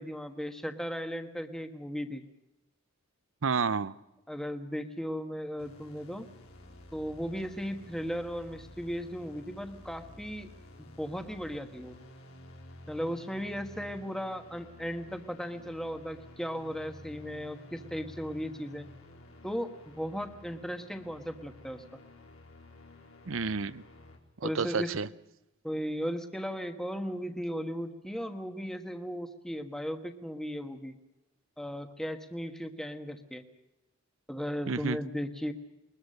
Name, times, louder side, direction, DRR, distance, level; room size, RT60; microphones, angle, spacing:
voice 1, 0.0-2.2 4.3-6.3 6.9-10.5 10.8-12.0 12.9-18.9 19.4-21.8 24.4-24.9 25.6-30.9 31.6-33.4 34.3-35.5, equal, ahead, 1.3 m, -36 dB
voice 2, 3.4-3.9 23.3-23.8 24.4-25.1 34.7-35.0, right 5 dB, 65° right, 0.7 m, -30 dB
sound 1, 5.6-24.2, left 1 dB, 85° left, 4.1 m, -52 dB
21.5 x 21.0 x 6.7 m
head